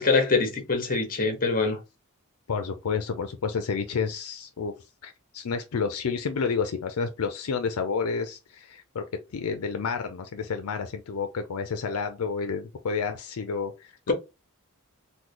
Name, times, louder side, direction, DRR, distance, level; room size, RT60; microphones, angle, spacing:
voice 1, 0.0-1.8, left 4 dB, 40° left, 0.8 m, -24 dB
voice 2, 2.5-4.7 5.0-9.0 9.3-14.1, left 5 dB, 70° left, 0.5 m, -30 dB
3.1 x 2.2 x 3.7 m
head